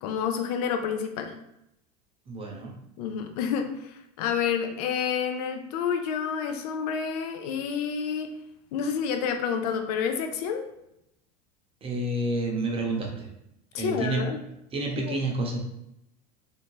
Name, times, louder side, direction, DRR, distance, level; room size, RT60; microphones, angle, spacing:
voice 1, 0.0-1.3 3.0-8.3 8.7-10.6 13.7-14.4 14.9-15.2, left 7 dB, 65° left, 5 dB, 0.5 m, -29 dB
voice 2, 2.3-2.7 11.8-13.3 13.8-14.2 14.7-15.6, right 2 dB, 25° right, 1 dB, 0.7 m, -29 dB
2.7 x 2.1 x 3.0 m, 0.83 s
hypercardioid pair, 90°, 21 cm